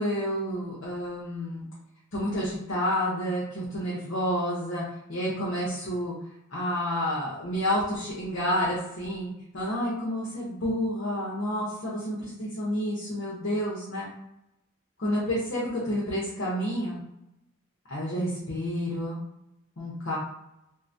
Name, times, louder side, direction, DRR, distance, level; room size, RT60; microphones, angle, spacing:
voice 1, 0.0-1.7 2.1-4.8 5.1-6.1 6.5-14.1 15.0-17.0 17.9-19.2 19.8-20.2, equal, 55° left, -7 dB, 0.8 m, -29 dB
3.7 x 2.1 x 2.6 m, 0.86 s
head